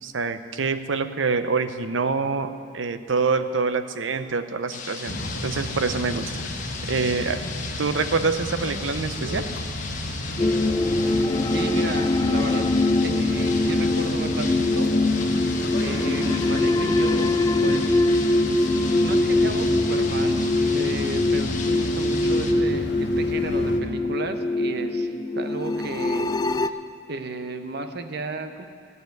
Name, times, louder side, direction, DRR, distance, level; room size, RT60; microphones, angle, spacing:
voice 1, 0.0-5.2 5.4-6.4 6.9-7.4 7.8-9.4, right 4 dB, 85° right, 11 dB, 0.7 m, -26 dB
sound 1, 4.7-22.5, left 5 dB, 45° left, 1.2 m, -36 dB
sound 2, 5.1-23.8, equal, 65° left, 1.3 m, -33 dB
sound 3, 10.4-26.7, left 2 dB, 20° left, 0.3 m, -23 dB
voice 2, 11.5-12.7 13.0-14.9 15.8-18.0 19.0-26.3 27.1-28.7, right 2 dB, 60° right, 8 dB, 0.9 m, -33 dB
15.0 x 6.8 x 9.4 m, 2.4 s
head